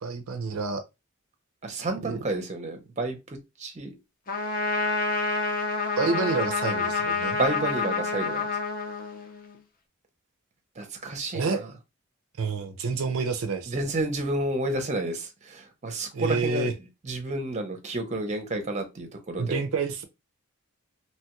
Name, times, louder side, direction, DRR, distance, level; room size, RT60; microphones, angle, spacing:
voice 1, 0.0-0.8 2.1-2.2 6.0-7.4 11.3-11.6 12.4-13.7 16.1-16.7 19.4-20.0, right 4 dB, 70° right, 0.4 m, -28 dB
voice 2, 1.6-3.9 7.4-8.5 10.8-11.7 13.7-16.7 17.0-19.6, right 2 dB, 30° right, 0.6 m, -30 dB
Trumpet, 4.3-9.5, left 4 dB, 40° left, 0.6 m, -28 dB
2.9 x 2.3 x 2.9 m
head